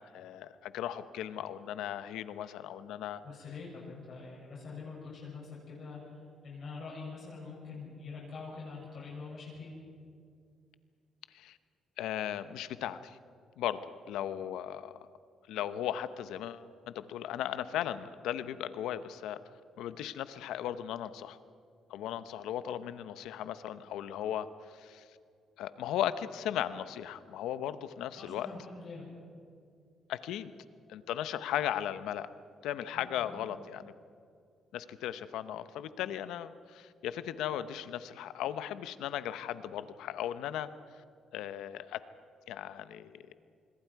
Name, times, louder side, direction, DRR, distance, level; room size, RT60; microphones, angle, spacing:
voice 1, 0.0-3.2 11.3-11.6 12.0-13.2 13.6-13.8 14.1-15.0 15.5-19.4 19.8-21.4 21.9-24.5 24.7-25.0 25.6-28.5 30.1-30.5 30.9-32.3 32.6-33.9 34.7-40.7 41.3-42.0 42.5-43.3, left 11 dB, 90° left, 13 dB, 0.8 m, -37 dB
voice 2, 3.2-9.7 28.2-29.0 32.9-33.4, left 4 dB, 60° left, -4 dB, 7.0 m, -45 dB
27.0 x 21.5 x 4.8 m, 2.3 s
cardioid pair, 90°, 0 cm